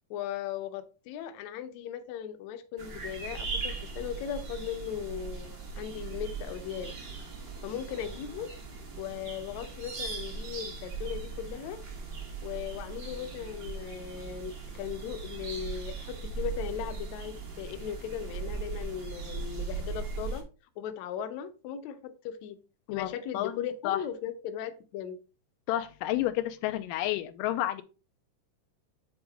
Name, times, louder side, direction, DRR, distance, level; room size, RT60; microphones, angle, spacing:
voice 1, 0.1-6.9 7.6-8.5 9.0-11.8 12.4-20.5 20.8-22.6 22.9-25.2, left 9 dB, 75° left, 8 dB, 1.7 m, -38 dB
sound 1, 2.8-20.4, right 4 dB, 70° right, 0.8 m, -39 dB
voice 2, 22.9-24.0 25.7-27.8, left 14 dB, 90° left, 10 dB, 2.2 m, -31 dB
8.2 x 3.9 x 3.5 m, 0.34 s
omnidirectional pair, 3.7 m